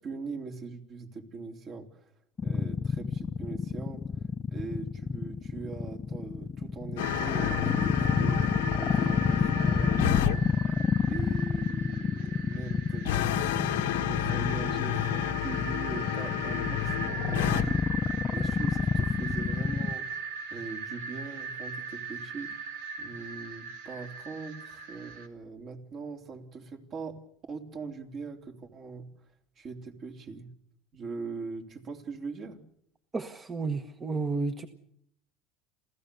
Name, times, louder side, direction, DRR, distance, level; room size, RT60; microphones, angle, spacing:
voice 1, 0.0-2.1 2.4-4.0 4.5-10.7 11.1-27.2 27.5-29.1 29.6-30.5 30.9-32.6, right 4 dB, 45° right, 4 dB, 3.4 m, -41 dB
sound 1, 2.4-19.9, left 5 dB, 30° left, 0.8 m, -28 dB
sound 2, 7.0-10.4 13.0-17.6, left 14 dB, 90° left, 1.2 m, -30 dB
sound 3, 7.0-25.3, right 5 dB, 90° right, 2.5 m, -40 dB
voice 2, 33.1-34.7, right 4 dB, 25° right, 9 dB, 1.3 m, -32 dB
27.5 x 15.5 x 6.9 m, 0.73 s
supercardioid pair, 105°, 0 cm